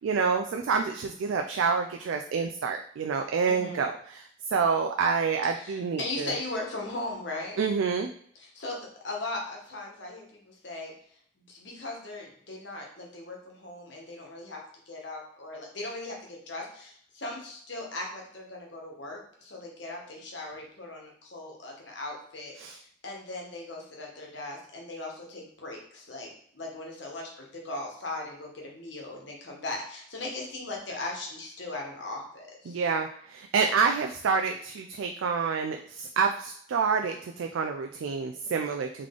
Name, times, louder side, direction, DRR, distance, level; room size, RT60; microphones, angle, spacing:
voice 1, 0.0-6.3 7.6-8.1 22.6-22.8 32.7-39.1, right 5 dB, 70° right, 4 dB, 0.3 m, -28 dB
voice 2, 3.5-3.8 5.5-7.6 8.4-10.9 11.5-26.3 26.5-32.8, left 2 dB, 60° left, -1 dB, 1.1 m, -38 dB
3.8 x 3.1 x 3.7 m, 0.63 s
head